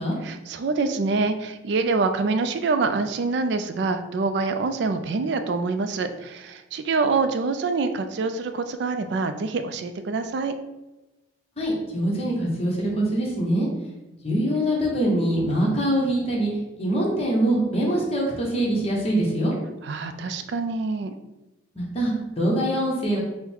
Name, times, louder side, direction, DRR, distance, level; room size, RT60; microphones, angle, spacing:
voice 1, 0.2-10.5 19.8-21.1, right 4 dB, 60° right, 9 dB, 0.3 m, -25 dB
voice 2, 11.6-13.7 14.2-16.5 16.8-19.5 21.8-23.2, right 1 dB, 30° left, -3 dB, 0.9 m, -23 dB
3.8 x 2.1 x 4.4 m, 1.0 s
head